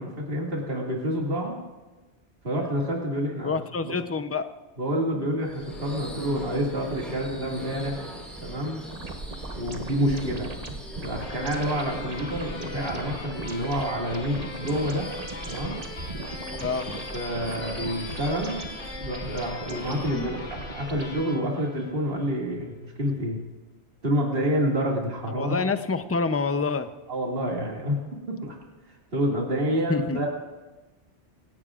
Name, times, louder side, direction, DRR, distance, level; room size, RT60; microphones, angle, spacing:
voice 1, 0.0-1.6 2.4-3.5 3.8-3.9 4.8-8.1 8.4-8.8 9.6-10.5 11.0-15.1 15.5-15.8 17.1-18.7 19.0-23.4 24.0-25.6 27.1-28.0 28.3-28.6 28.9-30.3, equal, 50° right, -3 dB, 2.5 m, -28 dB
voice 2, 3.4-4.5 10.0-10.3 16.6-17.0 20.1-20.3 25.4-26.9 29.9-30.2, left 4 dB, 20° left, 9 dB, 0.4 m, -27 dB
Subway metro underground / Screech, 5.4-21.4, equal, ahead, 4.1 m, -41 dB
sound 1, 8.9-21.2, right 2 dB, 35° right, 1.1 m, -39 dB
sound 2, 11.2-22.5, left 3 dB, 80° left, 1.8 m, -41 dB
25.5 x 16.5 x 2.5 m, 1.2 s
omnidirectional pair, 1.2 m